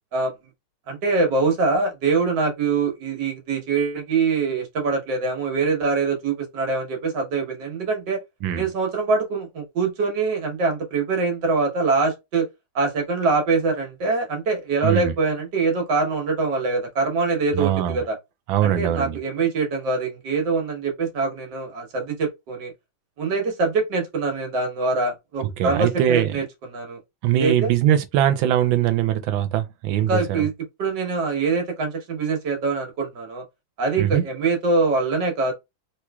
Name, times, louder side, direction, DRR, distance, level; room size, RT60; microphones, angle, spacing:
voice 1, 0.9-8.2 8.6-12.5 12.7-18.1 18.6-22.7 23.2-27.0 27.4-27.7 30.1-30.5 30.8-33.4 33.8-35.5, right 4 dB, 70° right, 1.6 m, -24 dB
voice 2, 14.8-15.1 17.5-18.0 18.5-19.2 25.4-26.4 27.2-30.5 34.0-34.2, right 11 dB, 90° right, 1.4 m, -21 dB
3.2 x 3.1 x 2.2 m
omnidirectional pair, 2.1 m